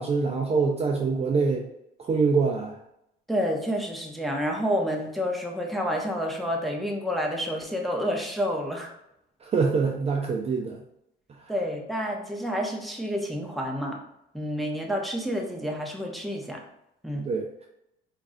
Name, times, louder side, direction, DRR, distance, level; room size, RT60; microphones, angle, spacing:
voice 1, 0.0-1.7 2.1-2.7 9.5-10.8 17.3-17.5, right 4 dB, 30° right, 1 dB, 0.5 m, -24 dB
voice 2, 3.3-8.9 11.5-14.0 14.3-16.6 17.0-17.3, equal, ahead, 0 dB, 0.8 m, -29 dB
4.6 x 2.5 x 2.7 m, 0.81 s
supercardioid pair, 95°, 20 cm